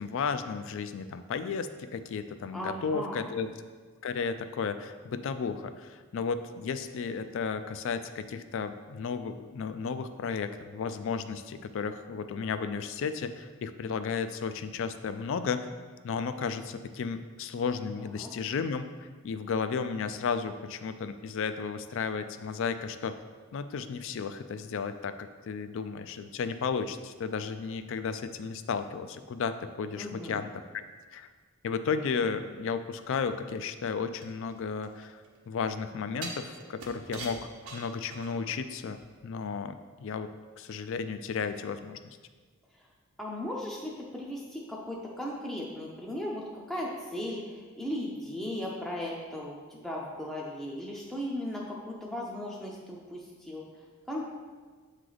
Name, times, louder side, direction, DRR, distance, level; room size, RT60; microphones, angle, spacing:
voice 1, 0.0-3.5 4.0-15.7 16.0-23.2 23.5-30.8 31.1-31.3 31.6-37.4 37.7-39.0 39.2-40.3 40.6-42.0, left 5 dB, 60° left, 10 dB, 0.3 m, -33 dB
voice 2, 2.5-3.4 18.0-18.3 30.0-30.4 42.7-42.9 43.2-54.3, left 1 dB, ahead, -4 dB, 0.5 m, -37 dB
sound 1, 34.2-35.4 36.2-38.6 38.9-39.0, right 3 dB, 85° right, 0.9 m, -43 dB
7.6 x 3.2 x 3.9 m, 1.5 s
head